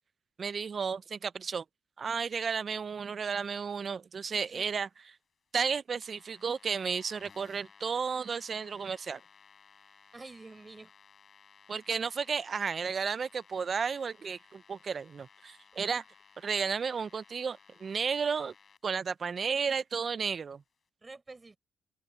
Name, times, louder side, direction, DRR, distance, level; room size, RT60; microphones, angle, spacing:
voice 1, 0.4-1.6 2.0-4.9 5.5-9.2 11.7-16.0 16.4-18.5 18.8-20.6, right 6 dB, 45° right, 0.5 m, -33 dB
voice 2, 4.3-4.7 10.1-10.9 21.0-21.6, right 3 dB, 25° right, 5.3 m, -48 dB
sound 1, 6.0-18.8, left 6 dB, 45° left, 6.5 m, -59 dB
open air
cardioid pair, 90°, 0 cm